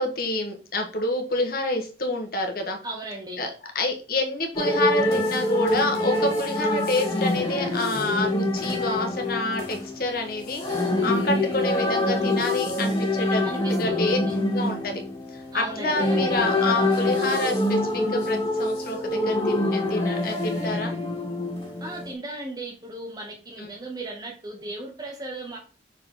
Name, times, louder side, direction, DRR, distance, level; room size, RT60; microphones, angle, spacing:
voice 1, 0.0-2.8 3.4-3.5 3.7-13.4 13.8-14.2 14.5-15.0 15.5-20.9 23.6-23.7, left 2 dB, 55° left, 3 dB, 1.5 m, -28 dB
voice 2, 2.8-3.4 13.4-14.4 15.5-16.4 21.8-25.6, right 1 dB, 20° right, 1 dB, 1.0 m, -36 dB
sound 1, 4.5-22.1, left 1 dB, 25° left, 3.0 m, -26 dB
6.2 x 4.9 x 3.8 m, 0.37 s
head